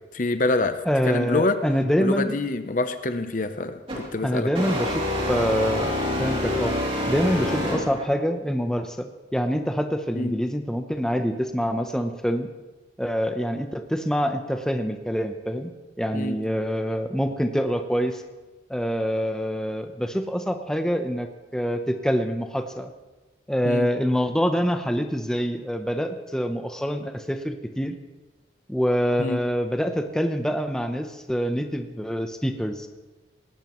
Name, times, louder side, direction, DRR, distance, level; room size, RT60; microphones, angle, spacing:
voice 1, 0.1-0.8 1.0-1.6 2.0-4.5 10.1-10.3 16.1-16.4 23.6-23.9 29.2-29.4, left 2 dB, 45° left, 9 dB, 0.7 m, -26 dB
voice 2, 0.8-2.4 4.2-6.7 7.1-12.5 13.0-15.7 16.0-18.2 18.7-22.9 23.5-28.0 28.7-32.9, equal, 5° left, 6 dB, 0.7 m, -25 dB
sound 1, 3.9-4.1 4.5-8.2, left 1 dB, 30° right, 2.9 m, -27 dB
19.0 x 17.5 x 3.1 m, 1.2 s
head